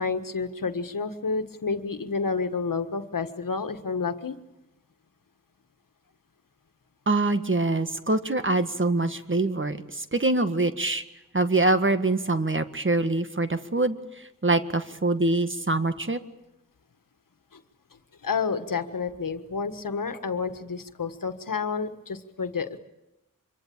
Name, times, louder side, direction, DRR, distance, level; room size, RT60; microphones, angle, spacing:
voice 1, 0.0-4.4 17.5-17.6 18.2-22.8, left 5 dB, 75° left, 8 dB, 1.6 m, -30 dB
voice 2, 7.1-11.0 11.3-14.0 14.4-16.2, right 2 dB, 35° right, 9 dB, 1.7 m, -24 dB
25.5 x 23.0 x 8.7 m, 0.92 s
wide cardioid pair, 50°, 33 cm